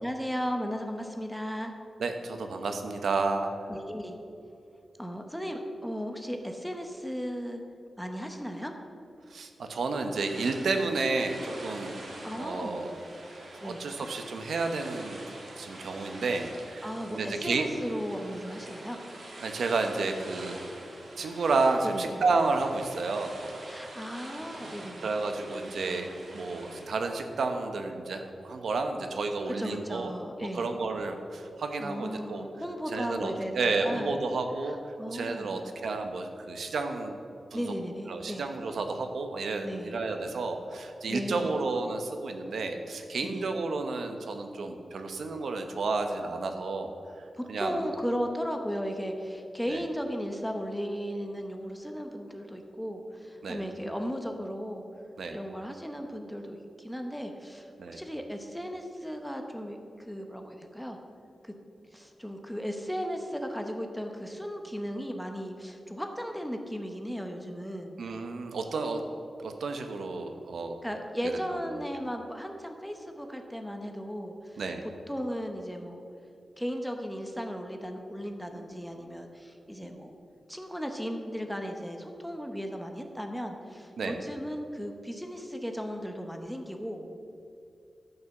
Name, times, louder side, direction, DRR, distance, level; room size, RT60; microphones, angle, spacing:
voice 1, 0.0-1.7 3.7-4.2 5.0-7.6 8.0-8.7 12.2-12.9 13.6-13.8 16.8-19.0 21.8-22.1 23.6-25.1 29.6-30.7 31.8-34.2 34.7-35.6 37.5-38.5 39.6-40.0 41.1-41.6 43.2-43.5 47.4-54.9 55.3-61.0 61.4-61.5 61.9-67.9 70.8-74.6 75.1-76.0 76.6-80.2 80.5-87.0, equal, ahead, 4 dB, 0.9 m, -36 dB
voice 2, 2.0-3.5 9.3-12.0 12.4-12.9 13.6-15.2 15.6-17.7 19.4-20.6 21.2-23.6 25.0-30.1 30.5-32.5 32.9-34.8 35.1-37.2 37.5-37.6 38.1-46.9 47.5-47.8 49.7-49.8 53.4-53.6 55.2-55.4 57.8-58.0 68.0-69.0 69.4-70.8 74.6-74.8 84.0-84.2, right 3 dB, 80° right, 5 dB, 1.0 m, -31 dB
sound 1, 10.2-26.8, right 1 dB, 65° right, 2.4 m, -45 dB
13.5 x 5.7 x 7.1 m, 2.6 s
wide cardioid pair, 150°, 0 cm